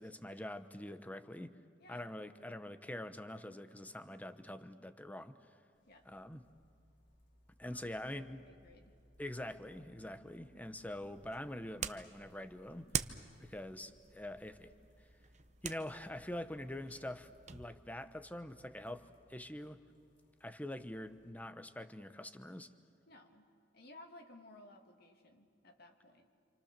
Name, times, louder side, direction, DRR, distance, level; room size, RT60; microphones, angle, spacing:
voice 1, 0.0-1.6 1.9-5.4 6.0-6.4 7.6-8.4 9.2-12.9 13.4-14.7 15.6-19.8 20.4-22.7, left 1 dB, 10° left, 11 dB, 0.9 m, -45 dB
voice 2, 1.8-2.2 5.9-6.1 7.6-7.8 8.1-8.9 23.1-23.5 23.7-26.3, left 2 dB, 55° left, 4 dB, 2.4 m, -58 dB
sound 1, 5.7-21.3, equal, 70° left, 4.6 m, -68 dB
sound 2, 10.9-17.7, right 7 dB, 40° right, 0.8 m, -45 dB
28.5 x 27.0 x 6.8 m, 2.3 s
head